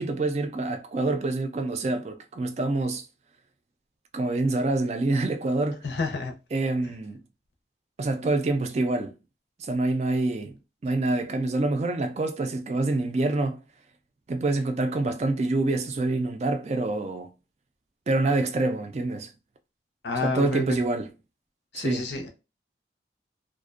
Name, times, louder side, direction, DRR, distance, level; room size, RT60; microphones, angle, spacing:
voice 1, 0.0-3.0 4.1-5.8 6.5-7.2 8.0-9.1 9.6-10.5 10.8-13.6 14.3-17.3 18.1-19.3 20.2-21.1 21.7-22.0, right 2 dB, 40° right, 0.3 m, -26 dB
voice 2, 5.8-6.3 20.0-20.6 21.7-22.3, left 3 dB, 85° left, 0.6 m, -29 dB
2.4 x 2.1 x 2.4 m
head